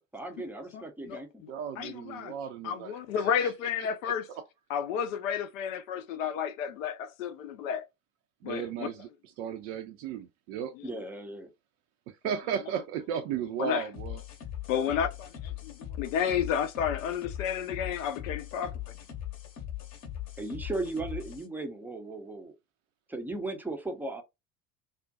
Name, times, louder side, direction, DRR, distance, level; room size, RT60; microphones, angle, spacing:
voice 1, 0.0-1.4 10.8-11.5 20.4-22.5 23.1-24.2, right 2 dB, 5° right, 0.5 m, -36 dB
voice 2, 0.7-1.5 1.8-2.3 2.6-4.3 4.7-7.9 8.4-8.9 13.6-13.8 14.7-18.7, left 8 dB, 65° left, 0.5 m, -31 dB
voice 3, 1.5-3.5 3.8-4.4 8.4-10.7 12.1-14.2, right 8 dB, 55° right, 0.5 m, -36 dB
sound 1, 13.9-21.5, left 11 dB, 40° left, 0.8 m, -40 dB
2.4 x 2.1 x 2.6 m
figure-of-eight pair, 70°, 43 cm